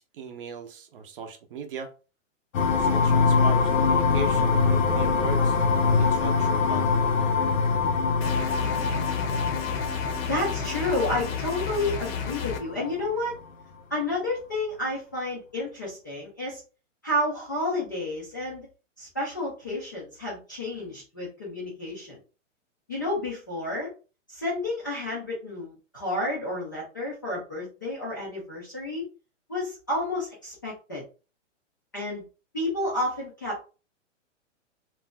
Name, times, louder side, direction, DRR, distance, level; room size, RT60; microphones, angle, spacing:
voice 1, 0.0-1.9 2.8-5.6 6.0-6.9, right 4 dB, 45° right, 6 dB, 0.6 m, -38 dB
sound 1, 2.5-13.1, left 4 dB, 85° left, 0.7 m, -24 dB
sound 2, 8.2-12.6, left 6 dB, 50° left, 0.7 m, -32 dB
voice 2, 10.2-13.3 13.9-16.6 17.0-18.7 19.0-22.2 22.9-23.9 24.3-29.0 29.5-31.0 31.9-32.2 32.5-33.6, left 1 dB, 15° left, -6 dB, 0.3 m, -30 dB
2.5 x 2.2 x 3.6 m, 0.34 s
hypercardioid pair, 155°, 38 cm